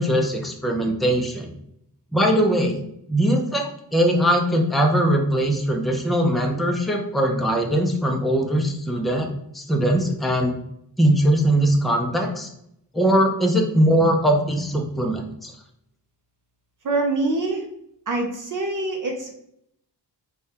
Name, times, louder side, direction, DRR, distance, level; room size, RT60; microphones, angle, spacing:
voice 1, 0.0-1.5 2.1-2.8 3.1-3.6 3.9-9.3 9.5-10.5 11.0-12.5 12.9-15.5, right 1 dB, ahead, 2 dB, 0.4 m, -21 dB
voice 2, 16.8-17.7 18.1-19.3, right 2 dB, 45° right, 2 dB, 0.6 m, -25 dB
5.0 x 2.3 x 4.1 m, 0.76 s
wide cardioid pair, 170°, 43 cm